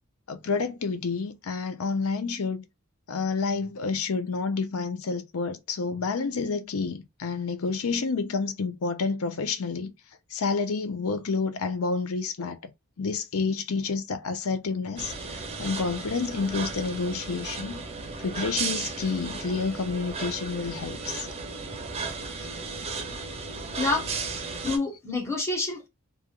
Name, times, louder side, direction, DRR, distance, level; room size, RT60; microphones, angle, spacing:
voice 1, 0.3-2.6 3.1-9.9 10.3-12.6 13.0-17.8 18.2-21.3, left 4 dB, 70° left, 0.6 m, -29 dB
sound 1, 15.0-24.8, right 4 dB, 25° right, 0.6 m, -35 dB
voice 2, 23.8-24.1 24.6-25.9, left 3 dB, 10° left, 0.9 m, -27 dB
3.2 x 2.4 x 2.3 m
head